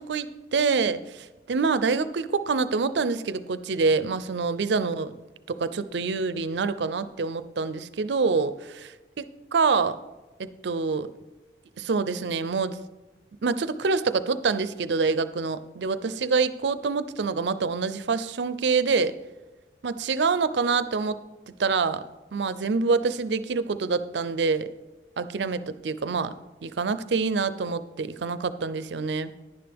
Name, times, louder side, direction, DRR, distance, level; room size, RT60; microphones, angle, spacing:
voice 1, 0.0-5.1 5.5-9.3 9.5-10.0 10.4-11.1 11.8-12.8 13.4-19.2 19.8-21.2 21.6-22.0 22.3-24.7 25.2-26.3 26.6-29.3, right 4 dB, 80° right, 14 dB, 0.5 m, -26 dB
11.0 x 10.0 x 3.5 m, 1.1 s
head